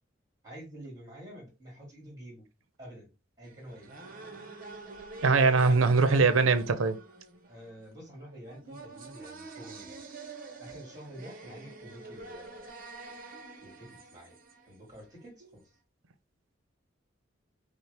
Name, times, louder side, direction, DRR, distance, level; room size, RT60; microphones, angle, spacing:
voice 1, 0.4-2.5 2.8-3.1 3.4-3.9 5.6-5.9 7.5-10.0 10.6-12.7 13.6-14.4 14.7-15.7, right 1 dB, 20° right, 2.1 m, -48 dB
sound 1, 3.4-15.3, right 3 dB, 45° right, 0.7 m, -47 dB
voice 2, 5.2-7.0, right 4 dB, 85° right, 0.5 m, -22 dB
5.5 x 2.1 x 3.4 m
head